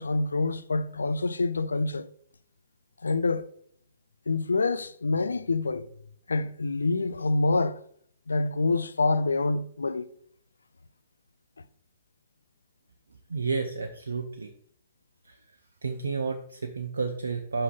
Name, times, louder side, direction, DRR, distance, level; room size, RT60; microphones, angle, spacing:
voice 1, 0.0-2.1 3.0-3.5 4.3-5.9 6.3-7.8 8.3-10.1, left 3 dB, 85° left, 0.5 m, -26 dB
voice 2, 13.3-14.5 15.2-15.4 15.8-17.6, right 4 dB, 80° right, 0.7 m, -31 dB
5.7 x 5.6 x 5.2 m
hypercardioid pair, 120°, 0 cm